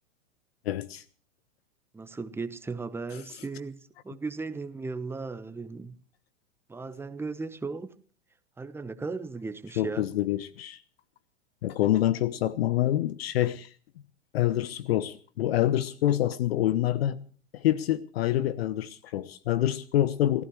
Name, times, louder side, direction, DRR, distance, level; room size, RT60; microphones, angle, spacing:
voice 1, 0.7-1.0 9.8-10.8 11.6-13.7 14.3-17.2 17.5-20.4, left 13 dB, 55° left, 0.9 m, -26 dB
voice 2, 1.9-3.8 4.0-6.0 6.7-7.9 8.6-10.1, right 4 dB, 5° right, 1.1 m, -36 dB
29.0 x 15.5 x 3.2 m
figure-of-eight pair, 105°, 36 cm